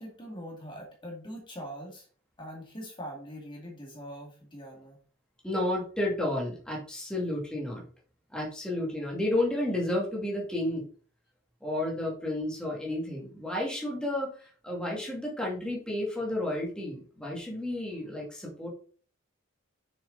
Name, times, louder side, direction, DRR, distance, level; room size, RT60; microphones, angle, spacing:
voice 1, 0.0-2.1 2.4-5.0, equal, 25° left, -1 dB, 2.1 m, -42 dB
voice 2, 5.4-7.8 8.3-10.8 11.6-18.7, left 1 dB, 5° left, -3 dB, 2.3 m, -31 dB
6.8 x 6.7 x 3.9 m, 0.41 s
head